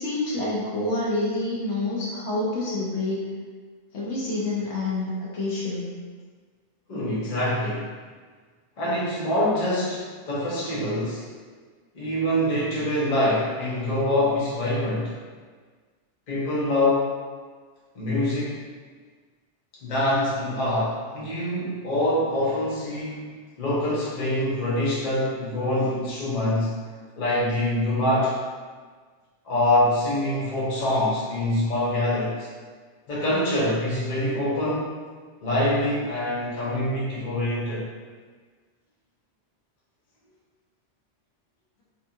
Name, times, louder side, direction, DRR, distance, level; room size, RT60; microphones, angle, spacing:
voice 1, 0.0-3.3 3.9-5.8, left 2 dB, 70° left, -6 dB, 0.9 m, -27 dB
voice 2, 6.9-7.9 8.8-11.3 11.9-15.1 16.3-17.1 17.9-18.6 19.8-26.7 27.2-28.4 29.4-32.5 33.1-34.9 35.4-37.9, left 1 dB, 45° left, -7 dB, 0.7 m, -25 dB
2.7 x 2.3 x 2.6 m, 1.5 s
omnidirectional pair, 1.2 m